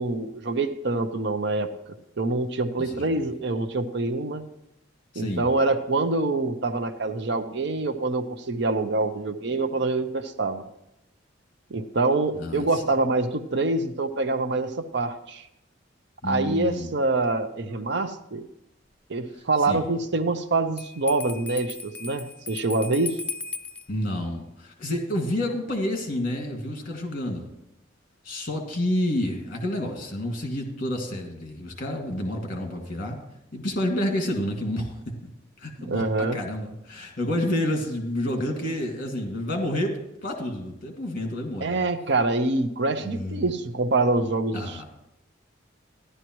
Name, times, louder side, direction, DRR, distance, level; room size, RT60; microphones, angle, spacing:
voice 1, 0.0-1.7 2.2-4.4 5.2-10.7 11.7-15.5 16.2-18.5 19.1-23.2 35.8-36.4 41.6-44.8, right 3 dB, 65° right, 9 dB, 0.7 m, -25 dB
voice 2, 2.8-3.3 5.1-5.5 12.3-12.8 16.2-16.9 19.7-19.8 23.9-27.5 28.2-33.2 33.5-35.1 35.6-41.7 43.0-43.5 44.5-44.8, left 1 dB, 50° left, 2 dB, 2.2 m, -29 dB
Bell, 20.8-23.9, left 4 dB, 5° left, 0.4 m, -37 dB
14.5 x 11.0 x 3.1 m, 0.85 s
head